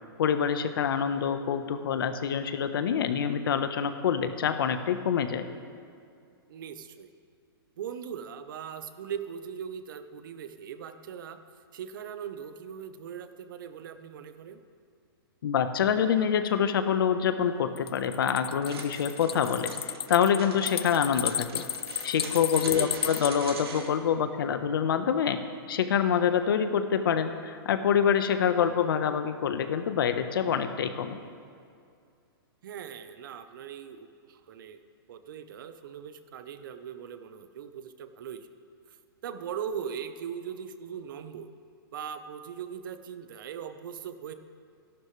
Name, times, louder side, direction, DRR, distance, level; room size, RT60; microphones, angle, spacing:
voice 1, 0.2-5.4 15.4-19.7 20.1-21.6 22.0-25.4 25.7-31.2, left 8 dB, 65° left, 8 dB, 1.3 m, -26 dB
voice 2, 6.5-7.1 7.8-11.4 11.7-14.6 22.7-23.2 32.6-34.8 35.1-38.5 39.2-41.5 41.9-44.3, right 8 dB, 55° right, 9 dB, 1.1 m, -40 dB
sound 1, 17.8-23.3, left 10 dB, 80° left, 0.4 m, -33 dB
sound 2, 18.6-23.9, right 4 dB, 80° right, 2.6 m, -41 dB
27.0 x 12.0 x 3.4 m, 2.3 s
hypercardioid pair, 160°, 13 cm